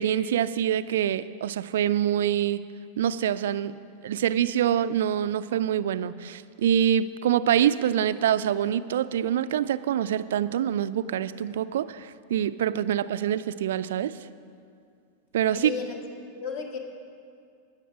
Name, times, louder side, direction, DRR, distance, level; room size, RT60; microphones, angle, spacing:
voice 1, 0.0-2.6 3.0-3.7 4.0-14.1 15.3-15.7, right 10 dB, 60° right, 14 dB, 0.3 m, -25 dB
voice 2, 15.5-16.0 16.3-16.8, left 5 dB, 45° left, 3 dB, 1.6 m, -33 dB
17.0 x 6.7 x 6.1 m, 2.3 s
figure-of-eight pair, 90°, 0 cm